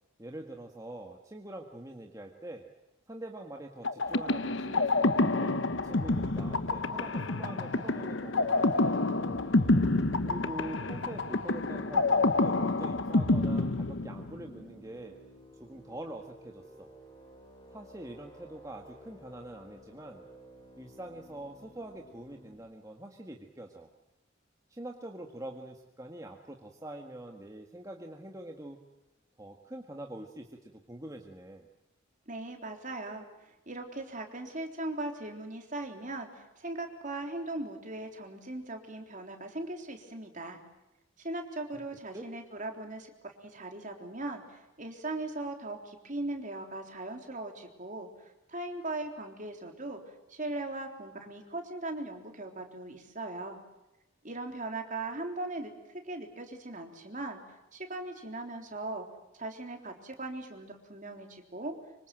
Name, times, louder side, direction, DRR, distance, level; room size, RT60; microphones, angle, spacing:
voice 1, 0.2-2.7 3.1-9.4 10.2-15.2 15.6-16.9 17.7-20.3 20.8-23.9 24.7-28.8 29.4-31.7 41.7-41.8 42.1-42.3, right 1 dB, 15° right, 2 dB, 1.7 m, -44 dB
sound 1, 3.8-14.5, left 2 dB, 65° left, 1.1 m, -28 dB
sound 2, 4.0-22.5, equal, 20° left, 7.2 m, -54 dB
voice 2, 32.3-40.6 41.2-50.0 50.3-53.6 54.2-55.7 56.0-57.4 57.7-59.0 59.4-61.7, right 2 dB, 40° right, 4 dB, 3.6 m, -39 dB
25.5 x 25.0 x 7.7 m, 0.96 s
head